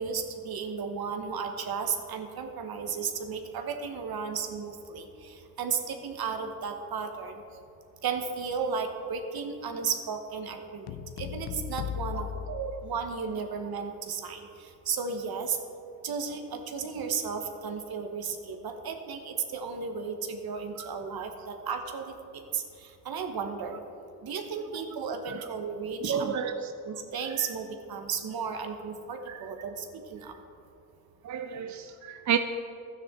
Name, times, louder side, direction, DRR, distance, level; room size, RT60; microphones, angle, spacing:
voice 1, 0.0-7.3 8.0-12.3 12.8-14.5 14.9-15.6 16.0-22.6 23.0-23.8 24.2-26.4 26.8-30.3, right 6 dB, 75° right, 5 dB, 1.1 m, -34 dB
sound 1, 10.9-13.4, left 9 dB, 90° left, 0.5 m, -37 dB
voice 2, 12.5-12.9 25.3-25.4 26.0-26.7 29.3-29.4 31.2-32.4, right 8 dB, 50° right, 7 dB, 0.6 m, -31 dB
12.5 x 9.6 x 3.6 m, 2.6 s
supercardioid pair, 45°, 37 cm